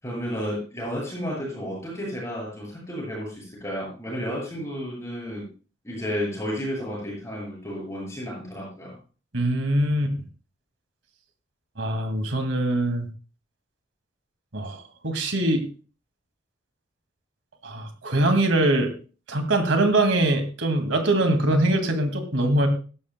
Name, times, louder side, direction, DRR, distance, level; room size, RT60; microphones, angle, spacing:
voice 1, 0.0-5.5 5.8-9.0, equal, 15° left, -3 dB, 6.9 m, -32 dB
voice 2, 9.3-10.1 11.8-13.1 14.5-15.6 17.6-18.9 19.3-22.7, right 1 dB, 70° right, 7 dB, 2.1 m, -23 dB
17.5 x 12.5 x 2.2 m, 0.35 s
head